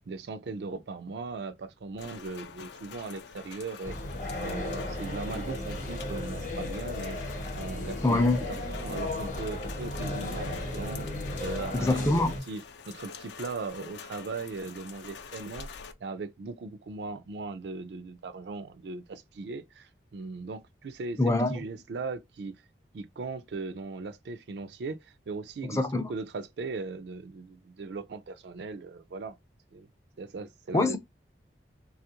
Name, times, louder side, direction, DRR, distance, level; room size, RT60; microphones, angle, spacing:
voice 1, 0.1-4.0 4.4-7.2 7.5-11.1 11.4-12.1 12.5-12.6 12.9-15.7 16.0-21.2 21.5-22.6 22.9-29.4 29.7-29.9 30.2-31.0, right 3 dB, 75° right, 0.4 m, -38 dB
Rain, 2.0-15.9, left 6 dB, 80° left, 0.4 m, -46 dB
sound 1, 3.8-12.4, left 1 dB, 45° left, 0.8 m, -35 dB
voice 2, 8.0-8.5 11.7-12.3 21.2-21.7 25.6-26.1 30.7-31.0, left 2 dB, 15° left, 0.4 m, -25 dB
3.4 x 2.4 x 2.8 m
head